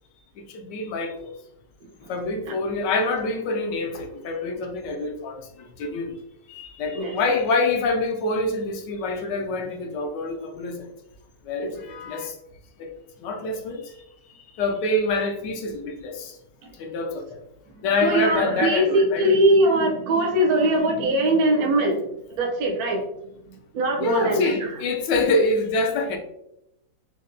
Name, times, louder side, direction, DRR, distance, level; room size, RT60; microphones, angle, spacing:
voice 1, 0.5-1.3 2.1-6.1 6.5-10.9 11.5-12.3 12.8-12.9 13.2-13.8 14.6-16.3 16.8-17.4 17.8-19.3 20.2-20.8 24.0-26.2, left 2 dB, 75° left, 3 dB, 1.2 m, -26 dB
voice 2, 18.0-22.0 22.4-23.0 23.7-24.7, right 1 dB, 65° right, 0 dB, 1.0 m, -21 dB
5.2 x 2.2 x 2.5 m, 0.83 s
omnidirectional pair, 2.0 m